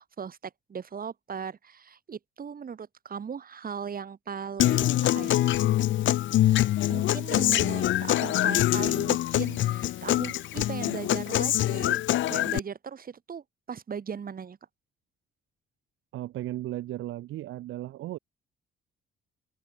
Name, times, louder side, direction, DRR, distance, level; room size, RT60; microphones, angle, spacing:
voice 1, 0.0-5.4 6.9-12.0 12.3-14.6, right 7 dB, 45° right, 5.7 m, -38 dB
Human voice / Acoustic guitar, 4.6-12.6, left 14 dB, 75° left, 0.9 m, -24 dB
voice 2, 16.1-18.2, right 15 dB, 85° right, 1.9 m, -35 dB
open air
cardioid pair, 90°, 20 cm